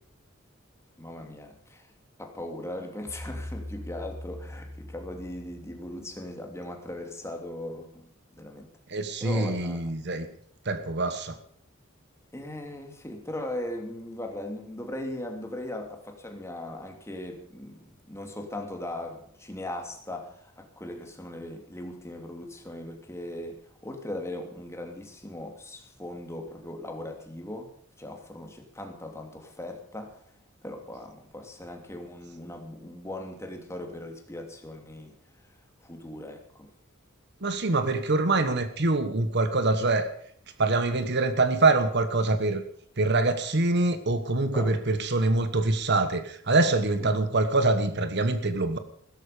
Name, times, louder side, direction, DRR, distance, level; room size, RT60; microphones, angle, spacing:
voice 1, 1.0-1.9 2.2-8.7 9.2-9.9 12.3-27.7 28.0-30.2 30.6-35.1 35.8-36.7 44.5-44.8 47.0-47.1, left 1 dB, 15° left, 3 dB, 2.8 m, -39 dB
sound 1, 3.1-6.2, left 1 dB, 15° right, 5.3 m, -41 dB
voice 2, 8.9-10.3 10.6-11.4 37.4-40.1 40.6-42.6 43.0-48.8, right 2 dB, 55° right, 10 dB, 1.4 m, -24 dB
16.5 x 13.5 x 5.1 m, 0.62 s
head